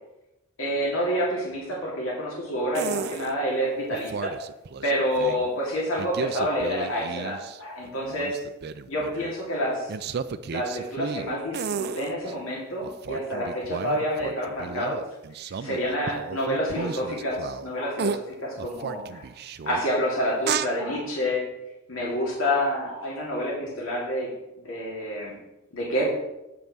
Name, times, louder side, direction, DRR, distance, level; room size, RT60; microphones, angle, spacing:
voice 1, 0.6-4.3 4.8-8.4 8.9-9.9 10.5-15.0 15.6-19.2 19.6-21.4 21.9-24.3 24.6-25.4 25.7-26.1, equal, 75° left, -4 dB, 2.6 m, -28 dB
sound 1, 2.7-3.3 3.9-5.5 6.0-7.6 7.8-9.3 9.9-12.3 12.8-17.7 18.0-18.2 18.6-19.8 20.4-20.7, right 6 dB, 50° right, 0.4 m, -33 dB
8.7 x 5.4 x 6.0 m, 0.95 s
head